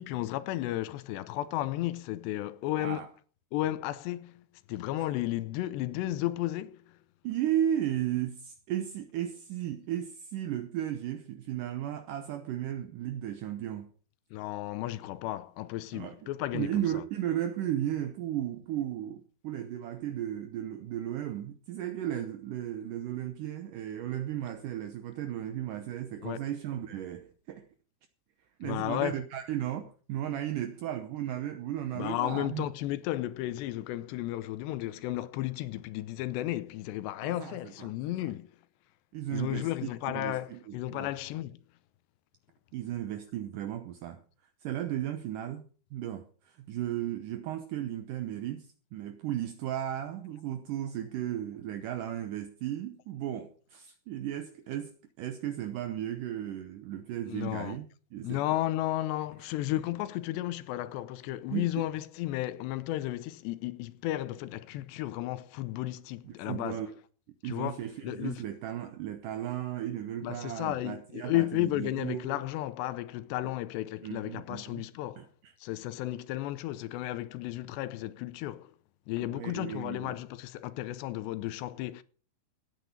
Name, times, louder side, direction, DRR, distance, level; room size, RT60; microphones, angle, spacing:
voice 1, 0.0-3.1 3.5-7.0 14.3-17.0 26.2-26.4 28.6-29.2 31.9-38.5 39.3-41.6 57.3-57.8 58.2-66.8 67.4-68.4 70.2-75.3 75.6-78.7 79.1-82.0, left 15 dB, 80° left, 2.9 m, -33 dB
voice 2, 7.2-13.9 15.9-27.7 28.6-32.7 37.2-37.9 38.2-38.3 39.1-41.1 42.7-44.2 44.6-45.7 45.9-57.9 58.1-58.4 61.5-61.7 66.3-66.9 67.4-72.4 74.0-74.8 75.2-75.3 79.3-80.2, right 11 dB, 80° right, 1.8 m, -35 dB
16.0 x 8.9 x 5.3 m
omnidirectional pair, 5.1 m